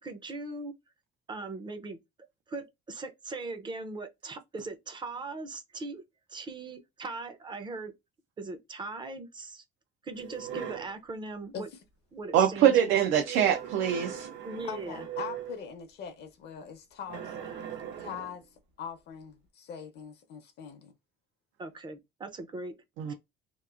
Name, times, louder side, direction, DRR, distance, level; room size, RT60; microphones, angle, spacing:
voice 1, 0.0-0.7 1.3-2.0 2.5-6.0 6.3-7.9 8.4-9.6 10.0-11.7 12.1-13.1 14.4-15.0 21.6-22.8 23.1-23.2, right 3 dB, 25° right, 0.5 m, -39 dB
sound 1, 10.1-11.0 13.2-15.7 17.1-18.4, right 9 dB, 70° right, 0.9 m, -40 dB
voice 2, 12.3-14.3 23.0-23.1, right 9 dB, 85° right, 0.5 m, -24 dB
voice 3, 14.6-17.3 18.0-18.4 18.8-20.9, left 7 dB, 55° left, 0.6 m, -41 dB
2.9 x 2.4 x 2.3 m
cardioid pair, 160°, 20 cm